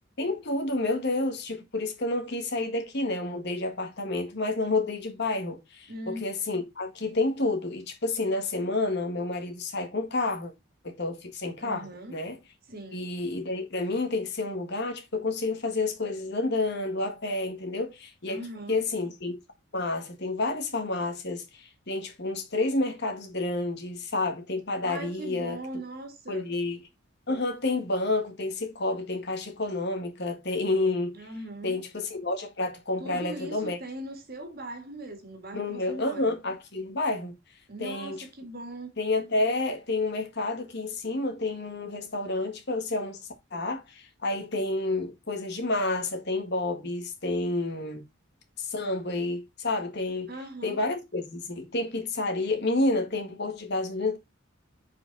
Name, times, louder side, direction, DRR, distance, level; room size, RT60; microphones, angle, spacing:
voice 1, 0.2-10.5 10.8-12.4 12.9-18.4 18.7-19.4 19.7-25.6 26.3-26.8 27.3-31.1 31.6-33.8 35.5-37.3 37.8-38.2 39.0-43.2 43.5-48.0 48.6-50.3 50.6-54.2, left 2 dB, 55° left, 1.8 m, -29 dB
voice 2, 5.9-6.3 11.6-12.2 12.7-13.1 18.3-18.8 24.8-26.6 31.1-31.8 33.0-36.3 37.7-38.9 50.3-50.8, right 1 dB, 45° right, 2.0 m, -40 dB
7.1 x 5.0 x 4.0 m
head